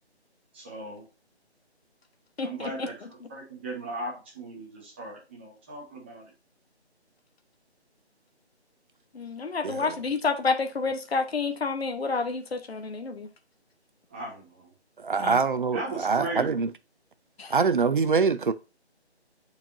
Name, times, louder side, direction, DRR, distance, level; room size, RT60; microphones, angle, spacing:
voice 1, 0.5-1.0 2.4-3.0 3.3-6.3 14.1-14.7 15.7-16.6, right 2 dB, 10° right, 1.0 m, -37 dB
voice 2, 2.4-3.1 9.1-13.3 15.2-15.4 17.4-17.6, left 4 dB, 65° left, 1.0 m, -29 dB
voice 3, 9.6-9.9 15.0-16.7 17.5-18.5, right 5 dB, 50° right, 0.6 m, -24 dB
8.5 x 4.7 x 2.5 m
figure-of-eight pair, 160°, 33 cm